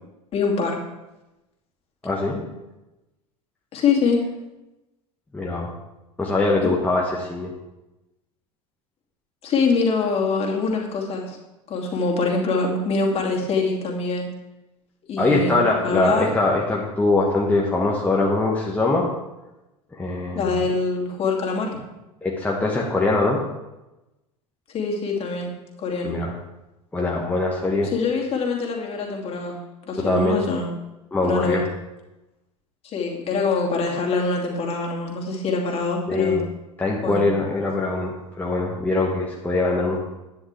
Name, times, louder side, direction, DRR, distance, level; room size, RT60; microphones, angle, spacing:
voice 1, 0.3-0.8 3.7-4.2 6.6-6.7 9.4-11.4 11.7-14.3 15.1-16.3 20.3-21.8 24.7-25.5 25.8-26.2 27.8-29.6 29.9-30.7 31.2-31.6 32.8-36.4 37.0-37.2, left 4 dB, 35° left, -1 dB, 2.6 m, -24 dB
voice 2, 2.0-2.5 5.3-5.7 6.2-7.5 15.2-19.1 19.9-20.6 22.2-23.4 26.0-26.3 26.9-27.9 30.0-30.4 31.1-31.6 36.1-36.4 36.8-40.0, left 2 dB, 10° left, -3 dB, 1.6 m, -22 dB
11.5 x 9.9 x 3.4 m, 0.99 s
figure-of-eight pair, 75°, 17 cm